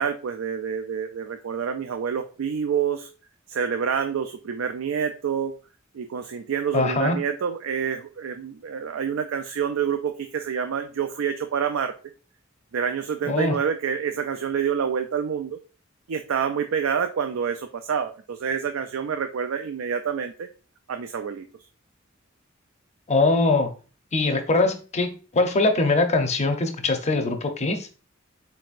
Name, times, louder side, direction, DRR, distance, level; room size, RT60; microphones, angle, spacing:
voice 1, 0.0-3.1 3.5-5.5 5.9-11.9 12.7-15.6 16.1-20.5 20.9-21.4, right 7 dB, 75° right, 7 dB, 0.4 m, -27 dB
voice 2, 6.7-7.2 13.2-13.6 23.1-23.7 24.1-27.9, left 3 dB, 35° left, 5 dB, 0.7 m, -22 dB
4.2 x 4.1 x 2.4 m, 0.37 s
head